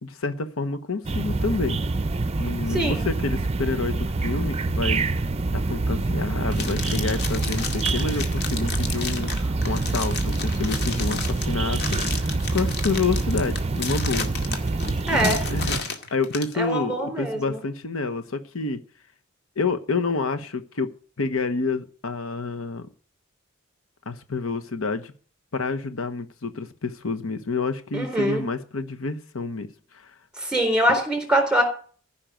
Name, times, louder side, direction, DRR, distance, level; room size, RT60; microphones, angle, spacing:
voice 1, 0.0-1.8 2.4-5.2 5.5-14.3 15.1-15.7 16.1-18.8 19.6-20.9 21.2-22.9 24.1-25.1 25.5-29.7 29.9-30.1, left 3 dB, 85° left, 1.1 m, -28 dB
sound 1, 1.0-15.8, right 3 dB, 30° right, 0.6 m, -26 dB
voice 2, 2.7-3.0 15.1-15.4 16.6-17.6 27.9-28.4 30.4-31.6, right 1 dB, 5° right, 4.1 m, -23 dB
sound 2, 6.5-16.5, left 5 dB, 55° left, 2.1 m, -33 dB
15.0 x 5.8 x 9.0 m
head